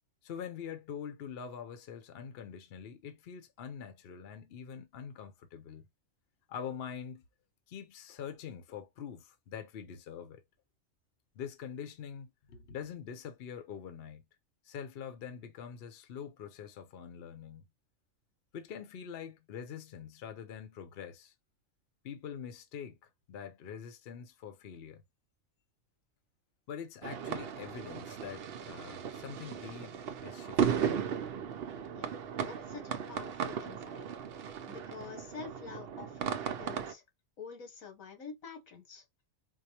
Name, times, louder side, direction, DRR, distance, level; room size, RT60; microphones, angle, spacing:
voice 1, 0.2-5.9 6.5-7.2 7.7-10.4 11.3-14.3 14.6-17.7 18.5-21.3 22.0-23.0 23.3-25.0 26.7-30.8, left 7 dB, 55° left, 0.8 m, -44 dB
sound 1, 27.0-36.9, right 7 dB, 60° right, 0.7 m, -36 dB
voice 2, 31.9-34.1 34.6-37.0 37.4-39.0, left 5 dB, 85° left, 1.6 m, -48 dB
4.6 x 2.1 x 2.8 m
omnidirectional pair, 1.4 m